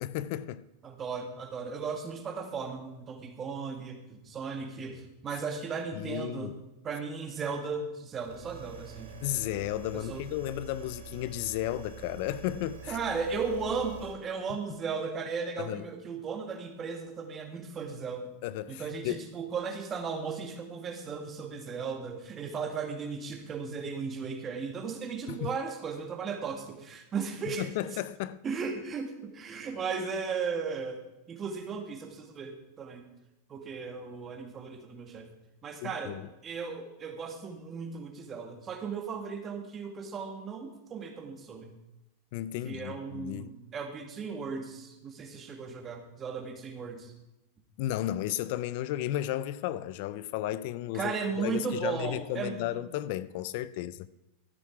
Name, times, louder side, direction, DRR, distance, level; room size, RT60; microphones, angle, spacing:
voice 1, 0.0-0.6 5.3-5.4 6.0-6.5 9.2-13.0 15.6-15.8 18.4-19.3 25.3-25.5 27.6-28.4 35.8-36.2 42.3-43.5 47.8-54.1, left 13 dB, 60° left, 0.4 m, -34 dB
voice 2, 0.8-6.6 6.8-9.1 9.9-10.2 12.9-18.3 18.7-27.7 28.4-33.1 33.5-35.3 35.6-36.2 36.4-41.7 42.6-47.1 50.9-52.8, right 5 dB, 25° right, 1.9 m, -36 dB
sound 1, 8.1-14.1, right 7 dB, 90° right, 3.0 m, -46 dB
13.0 x 9.4 x 4.7 m
supercardioid pair, 130°, 0 cm